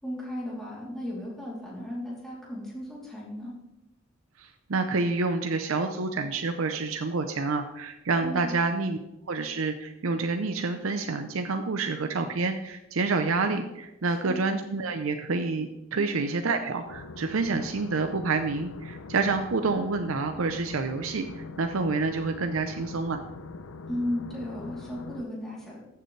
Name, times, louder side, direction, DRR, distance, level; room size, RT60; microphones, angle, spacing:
voice 1, 0.0-3.5 8.2-8.6 14.2-14.4 15.9-16.2 23.9-25.8, left 1 dB, ahead, -6 dB, 3.1 m, -35 dB
voice 2, 4.4-9.0 9.3-23.2, right 3 dB, 90° right, 6 dB, 0.6 m, -28 dB
sound 1, 16.8-25.2, left 3 dB, 85° left, 0.6 m, -42 dB
14.0 x 6.8 x 3.3 m, 0.93 s
head